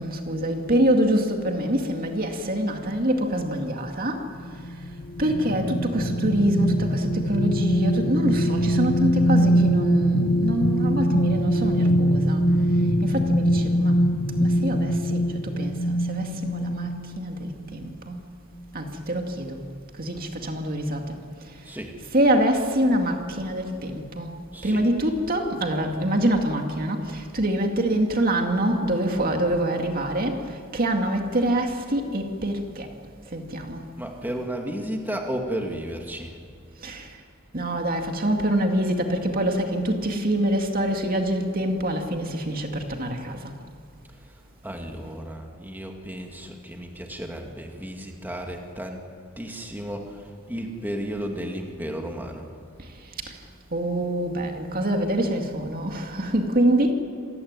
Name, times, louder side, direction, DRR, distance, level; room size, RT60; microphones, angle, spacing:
voice 1, 0.0-4.2 5.2-12.5 13.0-14.0 14.4-15.8 16.1-16.9 17.2-18.2 18.7-19.6 20.0-21.2 22.1-24.3 24.6-32.9 33.3-33.8 36.8-37.1 37.5-43.4 53.7-56.9, right 1 dB, 45° right, 3 dB, 2.2 m, -25 dB
sound 1, 4.4-17.3 17.8-17.9, equal, 55° left, 1.5 m, -23 dB
voice 2, 21.6-22.0 24.5-24.8 34.0-36.4 44.2-44.3 44.6-49.0 49.4-52.5, equal, 10° right, 2 dB, 2.3 m, -33 dB
27.5 x 17.0 x 9.7 m, 2.1 s
head